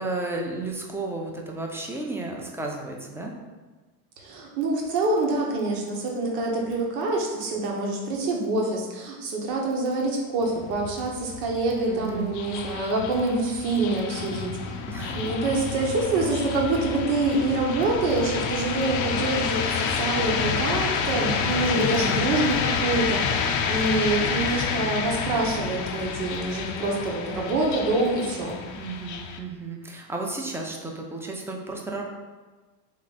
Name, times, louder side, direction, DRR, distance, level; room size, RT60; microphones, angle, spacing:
voice 1, 0.0-3.3 11.9-12.3 14.9-15.2 28.8-32.0, right 2 dB, 5° right, 0 dB, 0.6 m, -33 dB
voice 2, 4.2-14.8 15.1-28.6, right 2 dB, 75° right, 0 dB, 1.2 m, -26 dB
sound 1, 10.4-29.4, left 6 dB, 40° left, 0.5 m, -29 dB
3.5 x 3.2 x 4.1 m, 1.3 s
hypercardioid pair, 85°, 49 cm